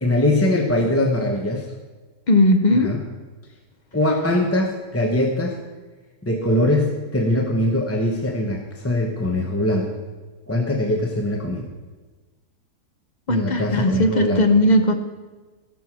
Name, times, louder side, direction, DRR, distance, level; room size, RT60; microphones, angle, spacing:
voice 1, 0.0-1.6 2.8-3.0 3.9-5.6 6.2-9.9 10.5-11.7 13.3-14.4, left 1 dB, 10° left, 1 dB, 0.7 m, -22 dB
voice 2, 2.3-2.9 13.3-14.9, left 1 dB, 45° left, 6 dB, 0.5 m, -17 dB
16.5 x 6.3 x 6.1 m, 1.3 s
omnidirectional pair, 1.7 m